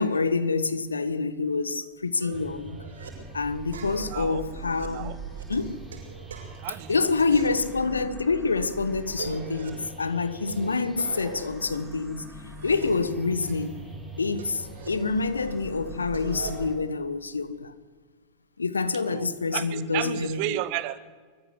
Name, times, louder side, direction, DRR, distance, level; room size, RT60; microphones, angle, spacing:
voice 1, 0.0-2.8 3.3-5.2 5.5-5.9 6.9-12.2 12.6-13.7 14.2-17.7 18.6-20.6, left 4 dB, 75° left, 1.1 m, -27 dB
sound 1, 2.2-3.1 3.7-7.0 7.3-8.2 8.5-8.6 9.0-9.9 10.5-13.1 13.4-15.5 15.8-16.7, right 4 dB, 65° right, 6.3 m, -42 dB
sound 2, 2.3-16.8, right 3 dB, ahead, 3.8 m, -42 dB
voice 2, 4.1-4.4 4.9-5.2 6.6-7.1 19.0-21.0, right 16 dB, 45° right, 1.2 m, -33 dB
24.0 x 14.5 x 8.3 m
figure-of-eight pair, 90°, 0 cm